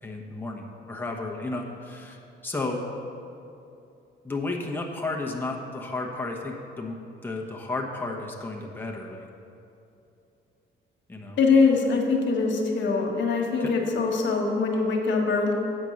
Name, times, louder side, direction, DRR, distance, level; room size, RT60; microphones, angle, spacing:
voice 1, 0.0-2.2 2.4-2.8 4.2-9.3 11.1-11.4 13.6-13.7, left 2 dB, 10° left, 0 dB, 1.0 m, -33 dB
voice 2, 11.4-15.5, left 4 dB, 70° left, 1 dB, 1.4 m, -23 dB
8.4 x 5.3 x 6.3 m, 2.7 s
cardioid pair, 90°, 20 cm